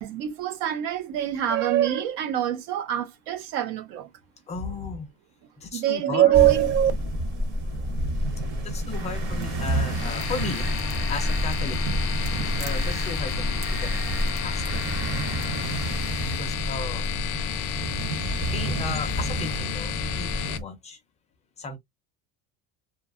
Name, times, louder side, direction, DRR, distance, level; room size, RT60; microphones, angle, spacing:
voice 1, 0.0-4.1 5.7-6.9, right 12 dB, 85° right, 0.8 m, -23 dB
voice 2, 4.5-5.1 5.6-6.3 8.6-10.7 11.1-11.8 12.6-13.9 14.4-15.1 16.2-17.1 18.5-21.0 21.6-21.8, left 4 dB, 20° left, 0.3 m, -35 dB
sound 1, 6.3-20.6, right 1 dB, 30° right, 0.7 m, -29 dB
sound 2, 8.9-17.2, right 5 dB, 60° right, 0.9 m, -41 dB
sound 3, 9.9-20.6, left 13 dB, 75° left, 0.5 m, -32 dB
2.7 x 2.3 x 2.3 m
cardioid pair, 180°, 36 cm